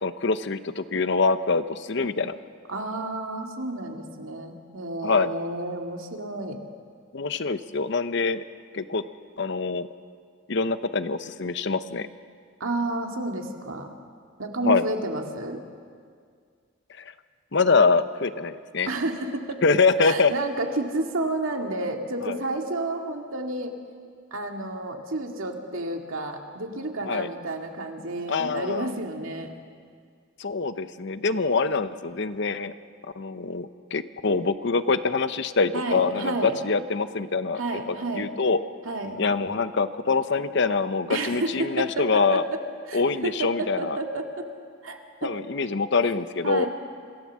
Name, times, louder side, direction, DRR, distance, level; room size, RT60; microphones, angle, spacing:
voice 1, 0.0-2.3 5.0-5.3 7.1-8.4 8.7-9.0 9.4-9.9 10.5-12.1 14.6-14.9 17.0-17.1 17.5-18.9 19.6-20.3 22.2-22.4 27.0-27.3 28.3-28.9 30.4-32.7 33.2-37.6 37.9-38.6 39.2-42.4 42.9-44.0 45.2-46.7, left 4 dB, 55° left, 12 dB, 0.8 m, -24 dB
voice 2, 2.7-6.6 12.6-13.9 14.4-15.6 18.9-19.6 20.0-23.7 24.3-29.5 35.7-36.6 37.6-38.3 38.8-39.2 41.1-42.6 42.9-44.5 44.8-45.4 46.4-46.7, right 2 dB, 80° right, 3 dB, 2.2 m, -30 dB
26.5 x 16.0 x 7.4 m, 2.1 s
head